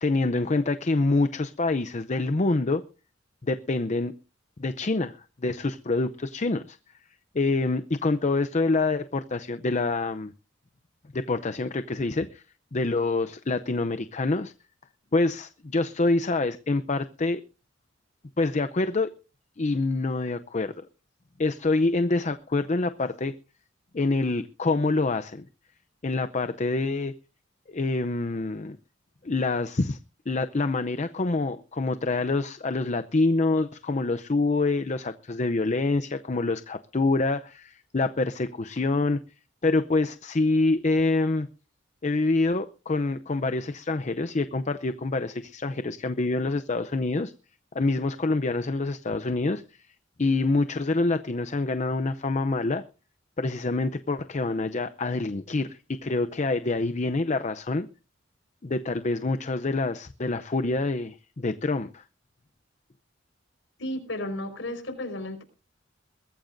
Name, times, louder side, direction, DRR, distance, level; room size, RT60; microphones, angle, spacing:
voice 1, 0.0-2.8 3.4-4.1 4.6-6.8 7.3-10.3 11.1-12.4 12.7-14.5 15.1-17.4 18.4-19.1 19.6-20.9 21.4-23.3 23.9-25.5 26.0-27.1 27.7-28.8 29.2-30.0 30.3-39.2 39.6-41.5 42.0-47.3 47.7-49.6 50.2-52.8 53.4-57.9 58.6-62.0, left 3 dB, 35° left, 0.6 m, -26 dB
voice 2, 63.8-65.4, left 1 dB, 70° left, 4.8 m, -33 dB
22.0 x 14.0 x 2.6 m
head